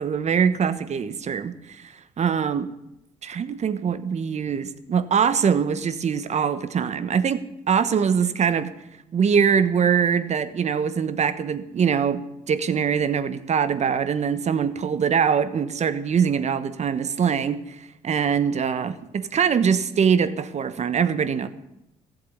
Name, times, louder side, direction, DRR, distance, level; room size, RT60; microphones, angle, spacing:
voice 1, 0.0-2.7 3.2-8.7 9.1-12.2 12.5-21.5, right 7 dB, 50° right, 12 dB, 1.2 m, -23 dB
15.0 x 7.9 x 8.4 m, 0.87 s
supercardioid pair, 55°, 15 cm